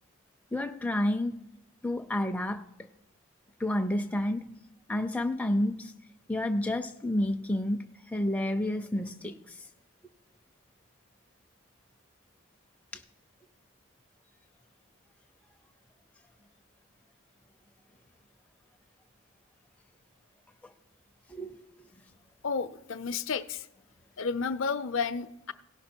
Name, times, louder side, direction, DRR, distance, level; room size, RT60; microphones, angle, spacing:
voice 1, 0.5-1.4 1.8-2.7 3.6-4.6 4.9-5.9 6.3-9.7 12.9-13.0 20.6-20.7 21.3-21.6, left 1 dB, 5° left, 0.4 m, -30 dB
voice 2, 22.4-23.7 24.2-25.5, left 5 dB, 65° left, 0.4 m, -31 dB
17.0 x 5.8 x 4.4 m
head